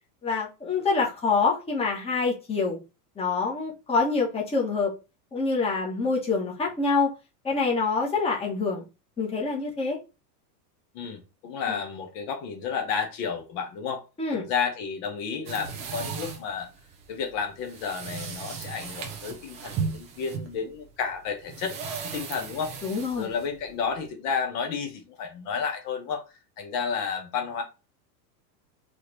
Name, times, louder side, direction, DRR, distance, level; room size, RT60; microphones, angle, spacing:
voice 1, 0.2-2.8 3.2-4.9 5.3-7.1 7.4-8.8 9.2-10.0 11.7-11.8 14.2-14.5 22.8-23.3, left 4 dB, 10° left, 1.3 m, -26 dB
voice 2, 10.9-14.0 14.3-16.7 17.1-21.8 22.0-22.7 23.2-26.2 26.6-27.6, left 6 dB, 45° left, 1.3 m, -31 dB
sound 1, 15.5-24.1, right 6 dB, 15° right, 0.3 m, -36 dB
4.1 x 3.3 x 3.9 m
supercardioid pair, 145°, 50 cm